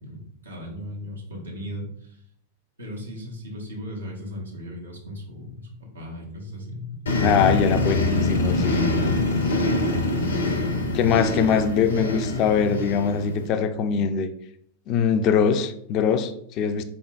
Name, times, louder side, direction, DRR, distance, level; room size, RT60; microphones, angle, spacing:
voice 1, 0.0-2.2 2.8-7.0 10.1-10.6, equal, 85° right, 1.0 m, -37 dB
sound 1, 7.1-13.5, left 2 dB, 80° left, 0.7 m, -24 dB
voice 2, 7.2-8.8 10.9-14.3 14.9-16.8, left 7 dB, 40° left, 0.4 m, -22 dB
3.8 x 3.6 x 2.4 m
figure-of-eight pair, 95°, 0 cm